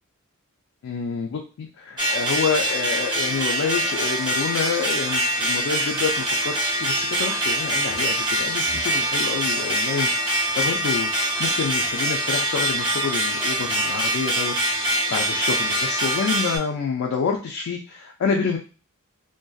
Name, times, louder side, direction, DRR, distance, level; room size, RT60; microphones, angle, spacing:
voice 1, 0.8-18.6, left 5 dB, 65° left, 1 dB, 0.3 m, -28 dB
sound 1, 2.0-16.6, right 1 dB, 20° right, 0.6 m, -24 dB
2.6 x 2.2 x 2.3 m, 0.36 s
head